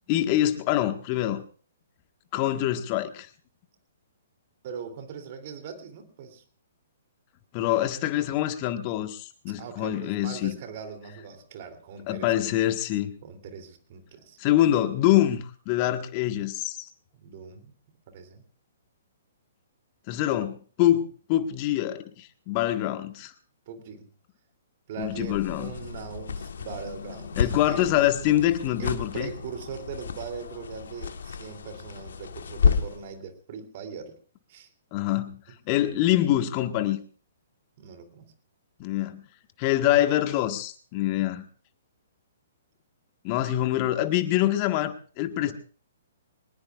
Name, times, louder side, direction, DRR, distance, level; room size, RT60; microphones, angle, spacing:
voice 1, 0.1-1.4 2.3-3.3 7.5-10.5 12.1-13.1 14.4-16.9 20.1-23.3 25.0-25.7 27.4-29.3 34.9-35.4 35.7-37.0 38.8-39.2 39.6-41.4 43.2-45.5, left 13 dB, 35° left, 8 dB, 1.6 m, -25 dB
voice 2, 4.6-6.4 9.6-12.5 13.2-14.4 17.1-17.7 18.1-18.4 23.7-24.1 24.9-27.9 28.8-34.2 34.5-34.7 37.8-38.3 45.4-45.5, right 6 dB, 45° right, 6 dB, 3.1 m, -40 dB
sound 1, 25.0-33.1, left 6 dB, 65° left, 1.4 m, -31 dB
23.5 x 20.0 x 2.5 m, 0.41 s
figure-of-eight pair, 125°, 0 cm